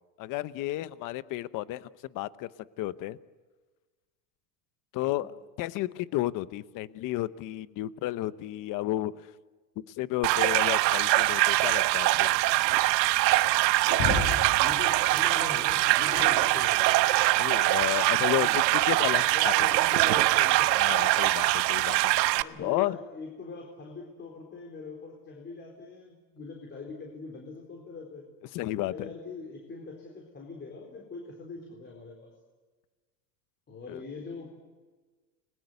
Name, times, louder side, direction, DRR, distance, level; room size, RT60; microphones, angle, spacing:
voice 1, 0.2-1.9 2.1-2.5 2.8-3.2 4.9-5.3 5.6-9.3 9.9-12.3 17.4-19.7 20.8-23.0 28.5-29.1 33.9-34.0, left 16 dB, 40° left, 15 dB, 0.9 m, -32 dB
sound 1, 10.2-22.4, right 18 dB, 85° right, 1.1 m, -23 dB
Shatter, 13.8-17.3, left 4 dB, 65° left, 8.0 m, -35 dB
voice 2, 14.6-17.0 18.1-18.6 19.2-20.7 21.9-28.3 28.8-32.3 33.7-34.5, left 4 dB, 20° left, 1 dB, 4.2 m, -42 dB
30.0 x 21.5 x 8.1 m, 1.3 s
supercardioid pair, 145°, 49 cm